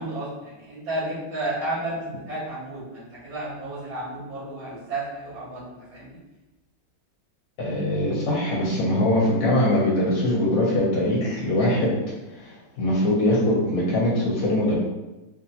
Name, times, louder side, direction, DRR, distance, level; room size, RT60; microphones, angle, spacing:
voice 1, 0.0-6.2, right 1 dB, 70° right, -9 dB, 2.4 m, -32 dB
voice 2, 7.6-12.0 12.3-14.7, left 1 dB, 65° left, -5 dB, 0.9 m, -22 dB
5.0 x 2.2 x 2.7 m, 1.1 s
omnidirectional pair, 2.3 m